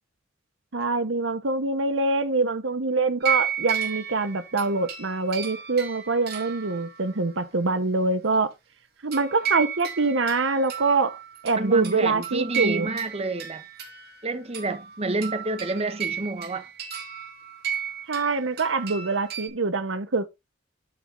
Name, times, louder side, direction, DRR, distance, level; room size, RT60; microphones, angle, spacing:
voice 1, 0.7-8.5 9.0-11.2 11.4-12.9 18.1-20.3, right 3 dB, 90° right, 1.0 m, -24 dB
sound 1, 3.2-7.2 9.1-19.5, right 8 dB, 55° right, 3.0 m, -33 dB
voice 2, 11.6-13.6 14.2-16.7, right 2 dB, 35° right, 1.1 m, -29 dB
12.0 x 4.3 x 3.8 m
head